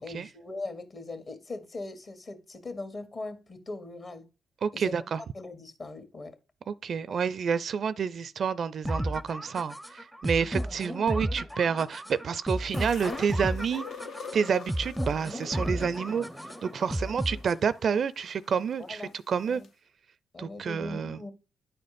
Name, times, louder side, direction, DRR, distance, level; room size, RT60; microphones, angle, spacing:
voice 1, 0.0-4.3 4.7-4.9 5.3-6.4 7.1-7.2 10.2-10.5 16.8-16.9 17.3-17.4 18.9-19.1 19.5-19.7 20.3-21.3, left 2 dB, 50° left, 1.9 m, -40 dB
voice 2, 4.6-5.2 6.7-13.9 14.3-16.3 16.6-19.6 20.4-21.2, right 6 dB, 60° right, 0.4 m, -29 dB
sound 1, 8.8-17.8, equal, ahead, 0.5 m, -33 dB
sound 2, 12.7-18.8 19.6-19.7, left 6 dB, 70° left, 0.7 m, -45 dB
10.0 x 4.3 x 5.1 m
supercardioid pair, 50°, 0 cm